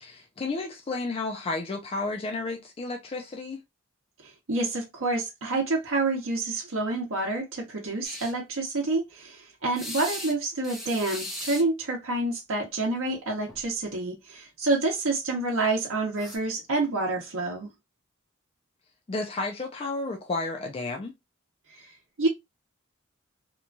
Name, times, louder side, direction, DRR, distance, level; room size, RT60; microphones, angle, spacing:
voice 1, 0.0-3.6 19.1-21.1, left 3 dB, 30° left, 0.3 m, -32 dB
voice 2, 4.2-17.7 22.2-22.3, right 2 dB, 75° right, 0.7 m, -28 dB
sound 1, 8.0-8.3 9.8-10.3 10.6-11.6 13.0-13.2 13.5-13.6 16.2-16.4, left 1 dB, ahead, 0.6 m, -37 dB
2.9 x 2.2 x 2.4 m
head